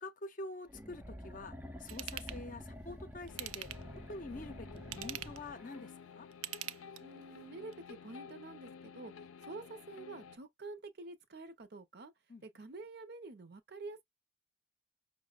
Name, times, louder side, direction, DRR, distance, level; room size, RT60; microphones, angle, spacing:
voice 1, 0.0-3.7 4.1-6.3 12.3-12.4, left 2 dB, 40° left, 0.5 m, -46 dB
sound 1, 0.7-5.9, equal, 10° right, 0.4 m, -49 dB
Ratchet pawl / Tools, 1.9-2.4 3.3-4.0 4.8-5.5 6.3-7.2 7.7-7.8, right 13 dB, 85° right, 0.3 m, -43 dB
sound 2, 3.3-10.4, left 6 dB, 90° left, 0.5 m, -52 dB
voice 2, 7.0-9.1 9.4-12.1 12.4-14.0, right 3 dB, 50° right, 0.6 m, -48 dB
5.5 x 2.1 x 2.3 m
head